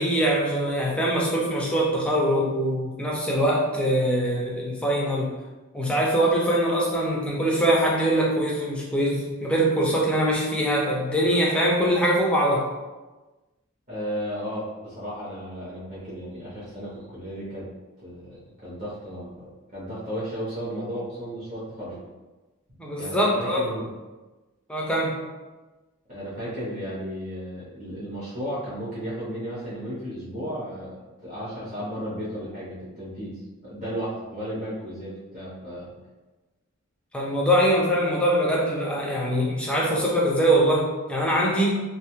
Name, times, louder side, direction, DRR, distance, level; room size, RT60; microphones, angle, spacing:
voice 1, 0.0-5.3 5.7-12.7 22.8-23.6 24.7-25.2 37.1-41.8, right 1 dB, 5° left, -3 dB, 0.4 m, -23 dB
voice 2, 13.9-17.7 18.0-22.0 23.0-23.9 26.1-35.9, equal, 35° right, -9 dB, 0.7 m, -34 dB
2.5 x 2.3 x 3.0 m, 1.2 s
head